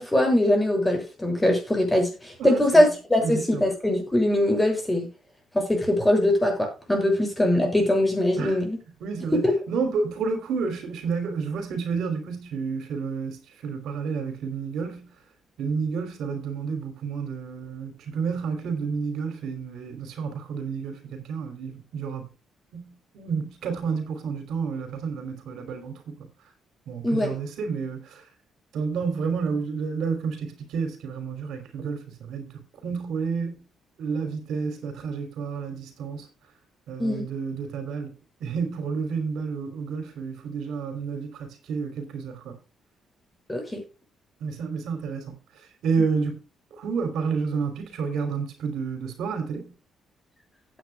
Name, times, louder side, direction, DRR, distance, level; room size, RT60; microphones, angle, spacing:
voice 1, 0.0-5.1 5.5-8.8 9.3-9.5 27.0-27.3 37.0-37.3 43.5-43.8, left 1 dB, 10° left, 6.9 m, -22 dB
voice 2, 2.4-2.9 3.2-3.6 8.4-8.6 9.0-15.1 15.6-22.3 22.7-26.3 26.9-28.2 28.7-33.6 34.0-36.3 36.9-38.1 38.4-42.6 44.4-45.4 45.8-46.4 46.7-49.7, right 5 dB, 80° right, 3.2 m, -30 dB
16.5 x 8.9 x 2.3 m
cardioid pair, 90°, 0 cm